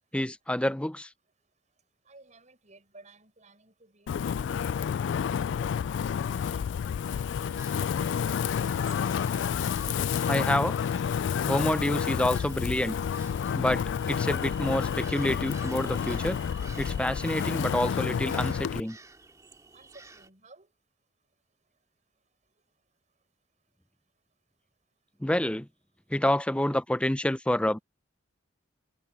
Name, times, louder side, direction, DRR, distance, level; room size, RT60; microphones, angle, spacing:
voice 1, 0.1-1.1 10.3-10.8 11.5-13.0 13.5-16.4 16.8-19.0 25.2-25.7 26.1-27.8, left 1 dB, 5° left, 0.6 m, -28 dB
voice 2, 2.1-5.7 6.1-6.6 7.2-9.0 19.7-20.7, right 2 dB, 40° right, 7.4 m, -56 dB
Wind, 4.1-18.8, left 7 dB, 70° left, 0.3 m, -30 dB
sound 1, 7.4-20.3, right 4 dB, 20° right, 2.6 m, -51 dB
head